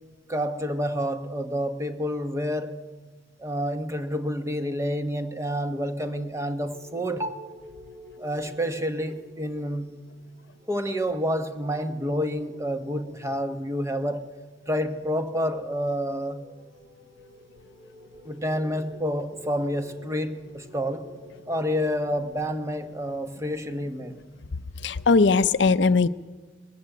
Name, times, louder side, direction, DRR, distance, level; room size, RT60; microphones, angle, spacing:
voice 1, 0.3-2.8 3.4-7.5 8.2-10.1 10.7-14.4 14.7-16.5 18.2-21.2 21.5-24.2, equal, 15° right, 1.1 m, -29 dB
sound 1, 5.7-22.3, left 1 dB, 35° right, 6.3 m, -50 dB
voice 2, 24.5-26.1, left 4 dB, 70° left, 0.6 m, -20 dB
21.0 x 15.0 x 9.0 m
head